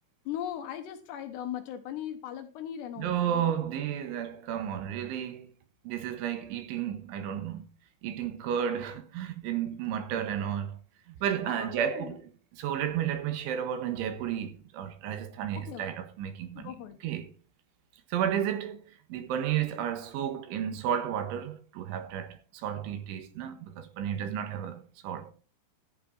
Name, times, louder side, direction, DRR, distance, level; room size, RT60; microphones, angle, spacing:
voice 1, 0.3-3.6 11.4-12.2 15.5-15.8 16.5-17.0 24.2-24.4, left 10 dB, 70° left, 2.9 m, -39 dB
voice 2, 3.0-5.5 5.9-7.7 8.0-10.8 11.2-16.7 17.0-17.3 18.1-25.3, right 9 dB, 75° right, 3.7 m, -32 dB
15.0 x 8.2 x 4.4 m
omnidirectional pair, 5.7 m